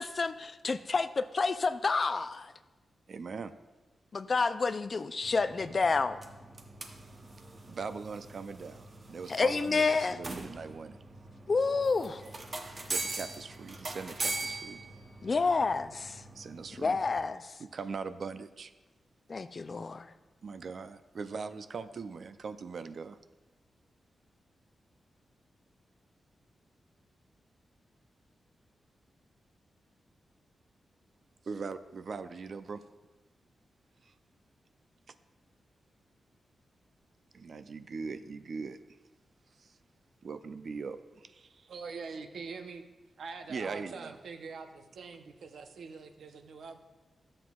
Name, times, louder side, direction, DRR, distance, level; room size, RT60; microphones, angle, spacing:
voice 1, 0.0-2.5 4.1-6.2 9.3-10.2 11.5-12.2 15.2-16.2 16.8-17.5 19.3-20.1, left 4 dB, 35° left, 12 dB, 0.3 m, -29 dB
voice 2, 3.1-3.5 7.7-11.0 12.9-14.8 16.4-17.0 17.6-18.7 20.4-23.2 31.4-32.8 34.0-34.1 35.1-35.2 37.3-38.8 39.6-39.7 40.2-41.7 43.5-44.2, right 5 dB, 55° right, 11 dB, 0.4 m, -41 dB
sound 1, 5.2-17.2, right 2 dB, 35° right, 0.7 m, -42 dB
voice 3, 41.7-42.8 43.2-46.8, right 4 dB, 75° right, 7 dB, 0.7 m, -44 dB
13.0 x 7.6 x 2.3 m, 1.2 s
wide cardioid pair, 145°, 0 cm